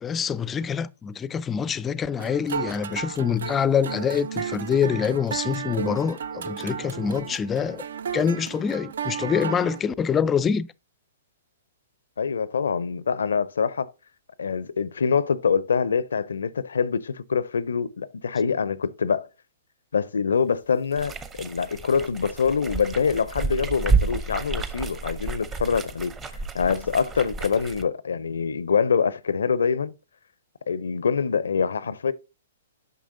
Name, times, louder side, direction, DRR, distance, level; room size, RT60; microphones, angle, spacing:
voice 1, 0.0-7.8 8.1-10.7, left 7 dB, 20° left, 0.4 m, -25 dB
sound 1, 2.2-9.8, right 7 dB, 65° right, 0.4 m, -33 dB
voice 2, 12.2-13.9 14.4-19.3 19.9-26.1 26.5-29.9 30.7-32.1, left 6 dB, 75° left, 0.5 m, -25 dB
sound 2, 20.9-27.8, right 4 dB, 20° right, 0.8 m, -30 dB
9.2 x 6.1 x 2.6 m
figure-of-eight pair, 115°, 0 cm